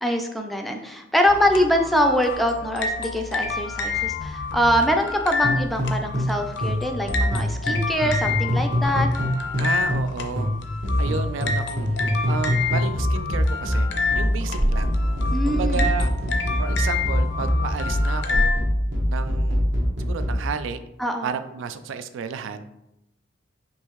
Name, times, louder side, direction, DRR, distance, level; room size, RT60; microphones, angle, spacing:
voice 1, 0.0-9.1 15.3-15.8 21.0-21.3, equal, ahead, 3 dB, 0.3 m, -23 dB
sound 1, 1.3-18.6, left 4 dB, 65° left, 0.5 m, -29 dB
sound 2, 5.4-6.4 6.6-10.1 10.4-20.4, equal, 65° right, 1.1 m, -23 dB
voice 2, 9.6-10.5 11.0-12.0 12.3-13.9 14.1-14.9 15.4-16.1 16.6-18.5 19.1-19.7 20.0-20.8 21.2-22.6, right 6 dB, 85° right, 10 dB, 0.3 m, -32 dB
sound 3, 13.9-18.0, left 1 dB, 25° right, 0.9 m, -36 dB
5.4 x 2.6 x 3.0 m, 0.87 s
head